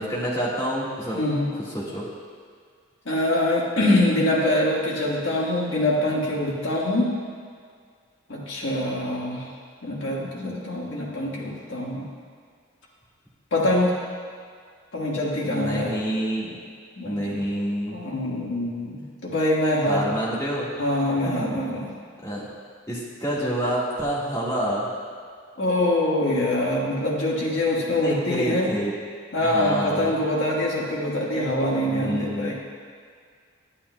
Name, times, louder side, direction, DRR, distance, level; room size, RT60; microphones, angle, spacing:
voice 1, 0.0-1.2 1.7-2.0 15.5-16.6 17.0-18.0 19.8-20.7 21.2-21.3 22.2-22.5 22.9-24.9 28.0-28.9 29.4-30.1 31.8-32.5, right 1 dB, 15° left, -7 dB, 1.6 m, -28 dB
voice 2, 1.2-1.5 3.0-7.1 8.3-9.5 9.8-12.1 13.5-14.0 14.9-15.9 17.0-17.4 17.9-20.2 20.8-21.9 25.6-28.7 29.3-32.6, left 1 dB, 70° left, -4 dB, 1.6 m, -24 dB
11.0 x 8.6 x 2.2 m, 2.1 s
head